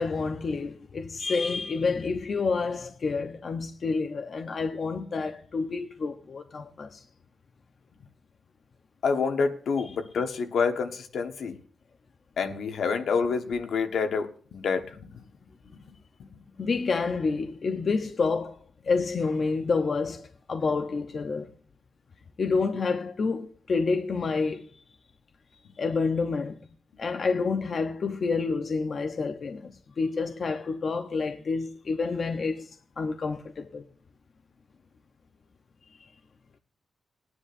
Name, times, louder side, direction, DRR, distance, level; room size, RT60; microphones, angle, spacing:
voice 1, 0.0-7.0 16.6-18.6 18.8-21.5 22.4-24.7 25.8-26.6 27.0-32.7 33.0-33.9 35.9-36.1, left 4 dB, 45° left, 0.7 m, -28 dB
voice 2, 9.0-11.5 12.4-15.2 15.7-15.8 16.2-16.3, left 5 dB, 75° left, 1.2 m, -28 dB
21.0 x 9.9 x 2.6 m
wide cardioid pair, 145°, 0 cm